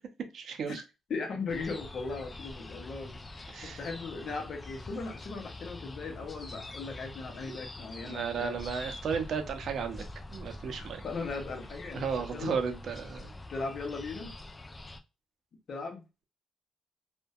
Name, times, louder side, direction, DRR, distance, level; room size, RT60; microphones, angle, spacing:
voice 1, 0.3-0.8 3.5-3.8 7.5-7.6 8.1-10.1 10.3-11.1 11.9-13.3, right 6 dB, 60° right, 6 dB, 0.5 m, -34 dB
voice 2, 1.1-8.6 10.8-12.6 13.5-14.3 15.7-16.0, left 4 dB, 55° left, 4 dB, 0.7 m, -38 dB
sound 1, 1.5-15.0, left 2 dB, 25° left, 0.3 m, -45 dB
2.6 x 2.2 x 2.3 m, 0.27 s
cardioid pair, 90°, 0 cm